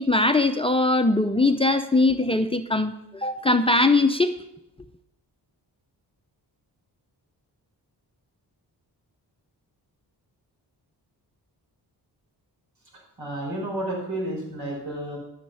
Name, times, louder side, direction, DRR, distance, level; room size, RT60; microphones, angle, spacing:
voice 1, 0.0-4.3, left 2 dB, 15° left, 9 dB, 0.6 m, -21 dB
voice 2, 13.2-15.2, right 1 dB, 65° right, -1 dB, 5.0 m, -31 dB
12.5 x 6.6 x 5.6 m, 0.87 s
cardioid pair, 70°, 42 cm